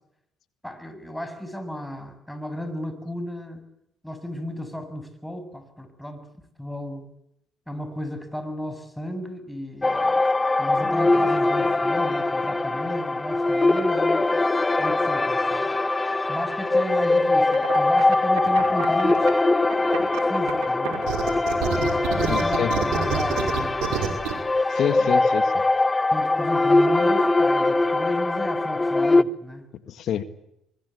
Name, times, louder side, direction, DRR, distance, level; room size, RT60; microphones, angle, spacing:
voice 1, 0.6-3.6 4.0-6.2 6.6-7.1 7.7-10.2 10.6-14.3 14.8-15.7 16.3-19.2 20.2-21.0 21.8-22.6 22.9-23.8 24.8-25.2 26.1-29.7, equal, 5° left, 7.6 m, -34 dB
sound 1, 9.8-29.2, left 2 dB, 20° left, 1.3 m, -22 dB
sound 2, 17.5-19.3 19.7-24.3, right 10 dB, 80° right, 5.5 m, -28 dB
voice 2, 22.2-22.7 24.7-25.6 29.9-30.2, left 10 dB, 65° left, 1.8 m, -27 dB
24.5 x 21.5 x 8.6 m
supercardioid pair, 65°, 0 cm